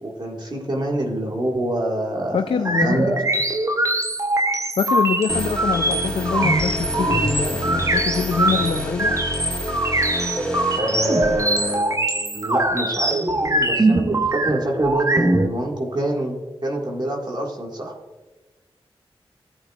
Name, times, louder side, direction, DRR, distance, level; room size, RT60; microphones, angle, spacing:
voice 1, 0.0-3.2 10.8-16.3 16.6-17.9, right 1 dB, 45° right, 0 dB, 1.8 m, -26 dB
voice 2, 2.3-3.2 4.8-9.2, left 6 dB, 70° left, 8 dB, 0.4 m, -24 dB
sound 1, 2.6-15.5, right 2 dB, 30° right, 0.8 m, -22 dB
sound 2, 5.3-11.8, left 1 dB, 10° left, 2.6 m, -29 dB
13.5 x 8.7 x 2.4 m, 1.2 s
cardioid pair, 50°, 10 cm